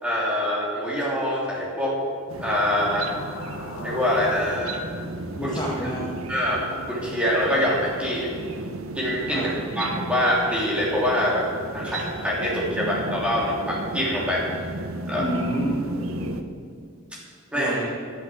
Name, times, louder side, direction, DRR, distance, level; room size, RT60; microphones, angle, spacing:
voice 1, 0.0-2.0 2.4-3.1 3.8-4.8 5.4-5.9 6.3-8.3 8.9-9.5 9.7-11.4 11.7-14.4 15.1-15.3 17.5-17.8, equal, 5° right, -5 dB, 3.1 m, -24 dB
sound 1, 2.3-16.4, right 2 dB, 75° right, 0.9 m, -34 dB
sound 2, 2.4-6.8, left 2 dB, 65° left, 1.5 m, -41 dB
voice 2, 5.4-6.1 9.3-9.5 15.2-15.9 17.5-17.9, equal, 20° left, -4 dB, 1.5 m, -29 dB
10.0 x 8.9 x 8.6 m, 2.2 s
head